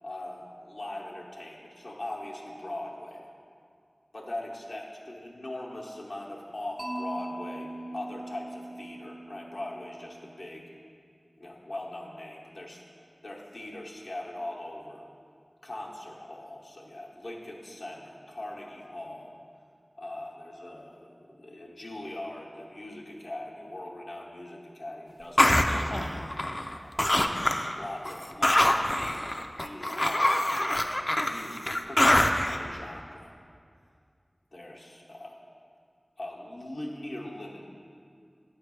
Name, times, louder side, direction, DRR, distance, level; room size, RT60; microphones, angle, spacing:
voice 1, 0.0-3.3 4.1-10.6 11.4-12.8 13.2-15.1 15.6-19.3 20.0-27.3 27.8-28.9 29.5-30.9 31.2-33.3 34.5-35.4 36.2-37.7, left 1 dB, 80° left, -3 dB, 1.0 m, -41 dB
Mallet percussion, 6.8-10.8, right 1 dB, 65° right, 0.8 m, -40 dB
sound 1, 25.4-26.7 27.0-27.7 28.1-32.6, left 1 dB, 35° left, 0.4 m, -24 dB
8.7 x 3.2 x 6.2 m, 2.3 s
wide cardioid pair, 45°, 0 cm